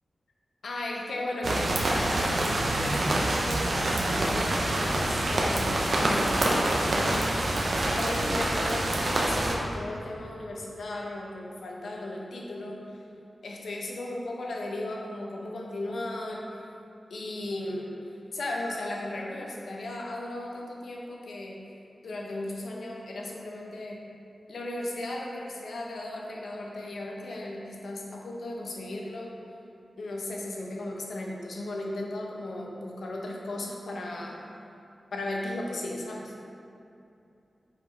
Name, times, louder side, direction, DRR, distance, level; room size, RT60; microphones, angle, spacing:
voice 1, 0.6-7.6 7.8-13.0 13.4-16.7 17.1-21.6 22.0-24.0 24.5-29.3 30.0-34.4 35.1-36.3, left 1 dB, 80° left, -1 dB, 0.9 m, -36 dB
sound 1, 1.4-9.6, right 1 dB, 55° right, 0.7 m, -26 dB
5.5 x 4.7 x 4.5 m, 2.6 s
wide cardioid pair, 125°, 0 cm